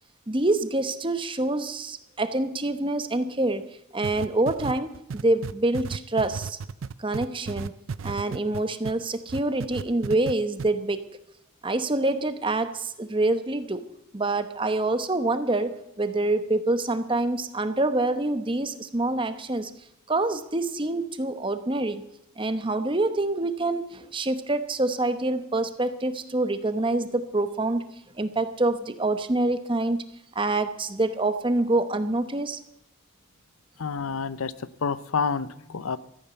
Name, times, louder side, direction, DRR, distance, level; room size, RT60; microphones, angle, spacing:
voice 1, 0.3-6.6 7.0-11.2 11.6-19.7 20.1-22.0 22.4-30.1 30.3-32.6, right 2 dB, 25° right, 10 dB, 0.9 m, -26 dB
sound 1, 4.0-9.0 9.3-10.3 10.6-10.7, right 5 dB, 65° right, 0.5 m, -33 dB
voice 2, 33.8-34.5 34.8-36.0, left 5 dB, 80° left, 16 dB, 0.7 m, -28 dB
14.5 x 8.8 x 8.0 m, 0.82 s
head